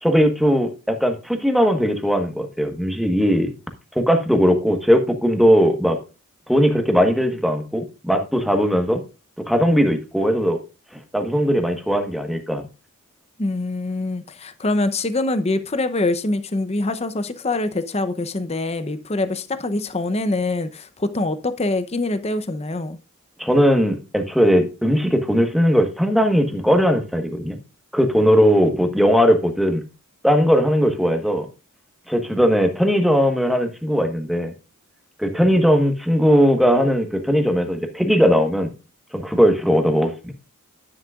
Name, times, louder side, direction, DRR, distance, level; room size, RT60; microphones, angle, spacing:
voice 1, 0.0-3.5 3.9-6.0 6.5-9.0 9.5-10.6 11.1-12.6 23.4-27.6 27.9-29.8 30.2-31.5 32.1-34.5 35.2-38.7 39.1-40.3, equal, ahead, 1.3 m, -18 dB
voice 2, 13.4-23.0, left 2 dB, 30° left, 0.7 m, -24 dB
10.5 x 10.0 x 2.4 m
head